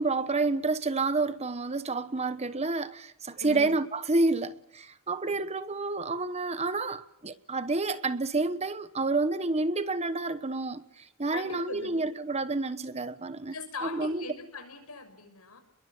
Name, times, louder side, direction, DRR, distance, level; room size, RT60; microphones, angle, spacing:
voice 1, 0.0-10.8 11.2-13.5 13.9-14.2, right 3 dB, 30° right, 1.1 m, -29 dB
voice 2, 3.4-3.7 5.2-5.4 11.3-12.1 13.5-15.6, left 3 dB, 85° left, 6.4 m, -40 dB
28.0 x 22.0 x 7.3 m
head